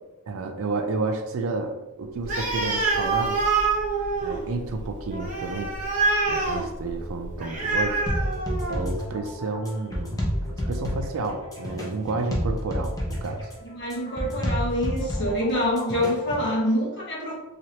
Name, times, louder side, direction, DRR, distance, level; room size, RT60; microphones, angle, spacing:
voice 1, 0.3-3.4 4.2-5.7 6.3-8.0 8.7-13.4, right 3 dB, 65° right, 6 dB, 0.4 m, -31 dB
Animal, 2.2-9.0, right 3 dB, 35° right, 0.7 m, -26 dB
sound 1, 8.1-16.5, equal, 15° left, 0.6 m, -30 dB
voice 2, 13.7-17.3, left 1 dB, 55° left, -3 dB, 0.9 m, -26 dB
3.1 x 2.4 x 2.8 m, 1.0 s
head